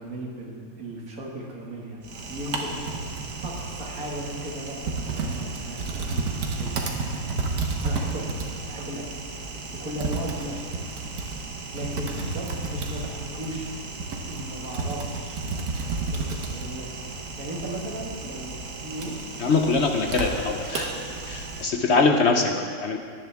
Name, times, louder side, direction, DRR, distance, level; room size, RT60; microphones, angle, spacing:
voice 1, 0.0-3.0 3.4-8.4 8.7-9.0 9.7-10.8 11.7-13.7 14.2-15.4 15.8-19.2 19.6-19.7, right 1 dB, 70° right, -2 dB, 2.4 m, -37 dB
Typing, 2.0-21.6, right 3 dB, 90° right, 1.7 m, -32 dB
voice 2, 19.4-20.9 21.3-23.0, left 4 dB, 55° left, 4 dB, 0.9 m, -23 dB
17.5 x 10.5 x 3.5 m, 2.1 s
omnidirectional pair, 1.6 m